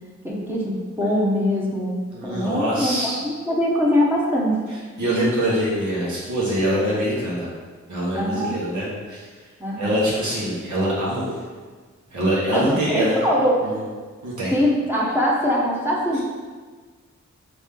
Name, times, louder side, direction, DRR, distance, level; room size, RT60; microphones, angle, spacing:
voice 1, 0.2-2.0 2.2-4.6 8.1-8.6 9.6-10.0 12.5-13.6 14.5-16.2, equal, 5° right, -5 dB, 0.8 m, -22 dB
voice 2, 2.1-3.2 4.7-7.5 7.9-9.2 9.7-11.3 12.1-13.2 13.6-13.8 14.2-14.5 16.1-16.2, equal, 85° right, -7 dB, 1.3 m, -24 dB
3.6 x 3.1 x 3.7 m, 1.5 s
cardioid pair, 50°, 29 cm